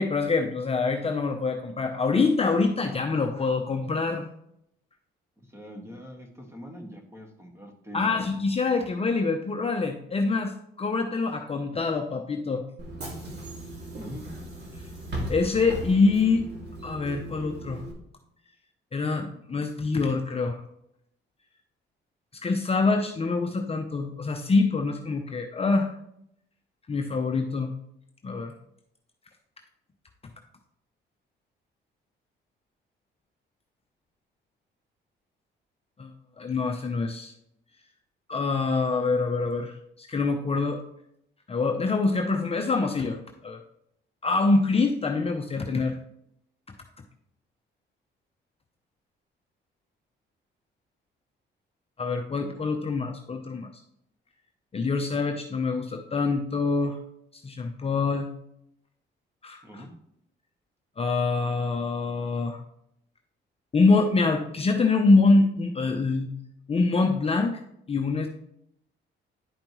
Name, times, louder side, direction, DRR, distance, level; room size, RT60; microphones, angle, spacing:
voice 1, 0.0-4.3 7.9-12.6 15.3-16.4 16.8-17.8 18.9-20.6 22.4-25.9 26.9-27.7 28.2-28.5 36.0-37.3 38.3-40.8 41.5-43.6 44.2-46.0 52.0-53.7 54.7-57.0 57.4-58.3 59.4-59.8 61.0-62.6 63.7-66.3 66.7-67.6 67.9-68.3, left 3 dB, 30° left, 4 dB, 0.7 m, -25 dB
voice 2, 5.5-8.2 14.0-14.3 59.6-59.9, equal, 15° right, 2 dB, 1.7 m, -42 dB
Bus / Engine, 12.8-17.9, right 1 dB, 60° right, 2.5 m, -37 dB
11.0 x 5.0 x 3.1 m, 0.76 s
cardioid pair, 90°, 20 cm